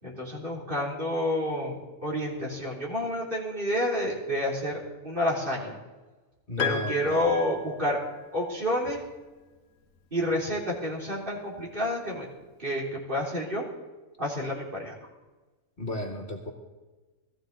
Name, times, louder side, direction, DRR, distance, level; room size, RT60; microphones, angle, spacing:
voice 1, 0.0-1.8 2.0-5.8 6.6-8.0 8.3-9.0 10.1-12.3 12.6-13.6 14.2-14.9, left 1 dB, 40° right, -3 dB, 3.5 m, -29 dB
voice 2, 6.5-7.3 15.8-16.5, left 2 dB, 40° left, 2 dB, 2.0 m, -34 dB
Piano, 6.6-8.3, left 7 dB, 75° left, 1.3 m, -34 dB
19.0 x 14.5 x 4.0 m, 1.2 s
omnidirectional pair, 1.4 m